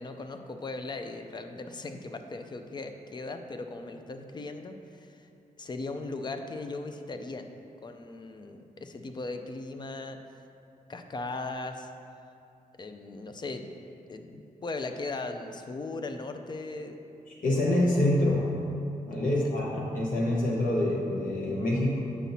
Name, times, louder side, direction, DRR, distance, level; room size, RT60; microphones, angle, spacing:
voice 1, 0.0-5.3 5.6-7.5 7.8-10.2 10.9-11.9 12.8-13.7 14.1-17.0 19.2-19.5, left 3 dB, 30° left, 6 dB, 0.4 m, -38 dB
voice 2, 17.4-18.4 19.1-22.0, left 1 dB, 70° left, -5 dB, 1.0 m, -26 dB
8.1 x 5.8 x 2.7 m, 2.6 s
wide cardioid pair, 135°, 14 cm